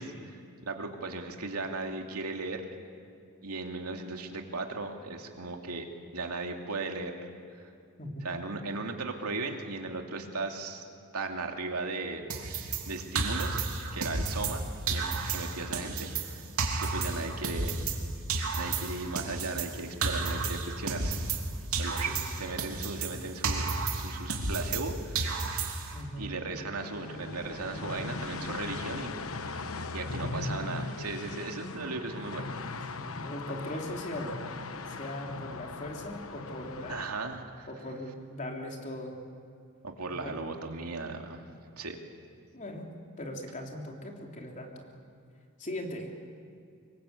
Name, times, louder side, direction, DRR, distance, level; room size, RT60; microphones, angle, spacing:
voice 1, 0.0-2.6 3.4-7.2 8.2-10.8 11.1-13.6 13.9-16.4 16.8-17.8 18.5-21.2 21.7-25.6 26.2-29.1 29.4-32.5 36.9-37.7 39.8-41.4 41.8-42.0, right 3 dB, 90° right, 3 dB, 2.6 m, -37 dB
voice 2, 8.0-8.4 22.1-22.2 25.9-26.5 33.0-34.4 34.9-37.0 37.7-39.2 40.1-40.3 42.5-44.9 45.6-46.1, left 1 dB, 35° left, 1 dB, 3.5 m, -39 dB
sound 1, 12.3-14.6 14.9-18.0 18.3-21.5 21.7-24.9 25.1-26.0, right 4 dB, 75° right, 3.1 m, -32 dB
sound 2, 26.8-37.1, left 3 dB, 65° left, 1.1 m, -39 dB
25.5 x 22.5 x 8.4 m, 2.4 s
head